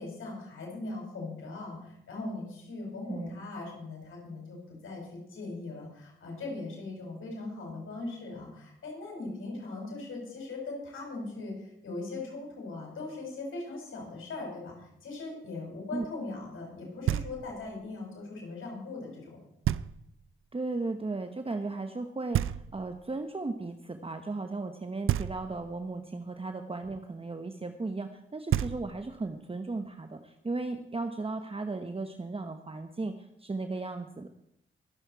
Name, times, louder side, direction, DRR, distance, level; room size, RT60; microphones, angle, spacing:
voice 1, 0.0-19.4, left 2 dB, 85° left, -1 dB, 5.5 m, -40 dB
Knock, 17.1-17.7 19.6-20.3 22.3-23.1 25.1-25.8 28.1-28.2 28.5-29.3, right 12 dB, 85° right, 0.4 m, -31 dB
voice 2, 20.5-33.1 33.4-34.3, right 3 dB, 25° right, 7 dB, 1.0 m, -36 dB
22.0 x 7.8 x 4.7 m, 0.78 s
cardioid pair, 55°, 21 cm